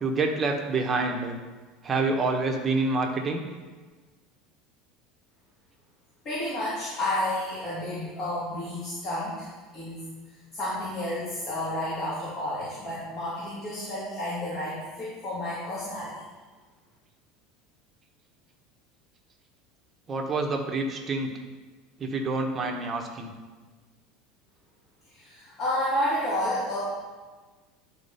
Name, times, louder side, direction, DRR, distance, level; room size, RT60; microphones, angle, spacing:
voice 1, 0.0-1.4 1.8-3.4 20.1-21.4 22.0-23.3, right 3 dB, 20° right, 1 dB, 1.2 m, -27 dB
voice 2, 6.2-9.5 9.7-10.0 10.5-16.2 25.1-26.8, left 1 dB, 35° left, -9 dB, 2.9 m, -31 dB
10.5 x 4.4 x 5.6 m, 1.3 s
supercardioid pair, 145°, 0 cm